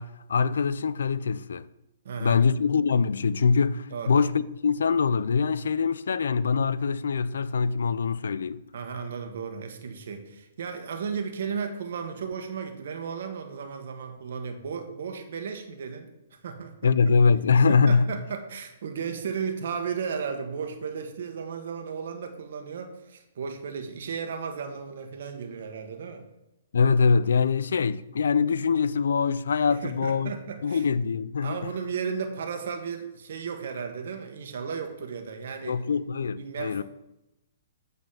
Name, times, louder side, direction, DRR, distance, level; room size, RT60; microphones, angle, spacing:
voice 1, 0.0-1.7 2.2-8.6 16.8-18.1 26.7-30.3 30.6-31.6 35.7-36.8, left 5 dB, 80° left, 0.4 m, -23 dB
voice 2, 2.0-2.4 3.9-4.1 8.7-16.1 16.4-16.9 17.7-26.2 29.7-30.9 31.4-35.8 36.4-36.8, right 6 dB, 65° right, 1.4 m, -34 dB
8.6 x 4.1 x 5.8 m
hypercardioid pair, 140°, 0 cm